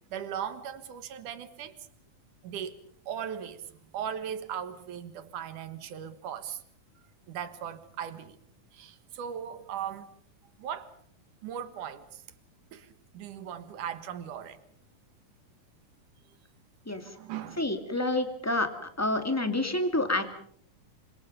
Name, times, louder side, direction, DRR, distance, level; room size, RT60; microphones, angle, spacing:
voice 1, 0.1-1.8 2.4-2.8 3.1-6.6 7.3-8.4 8.7-10.1 10.6-10.9 11.4-12.2 12.7-14.6 17.2-17.6, right 9 dB, 80° right, 3.0 m, -38 dB
voice 2, 17.6-18.7 19.0-20.2, left 2 dB, 5° left, 1.9 m, -28 dB
27.0 x 25.5 x 5.3 m
omnidirectional pair, 3.6 m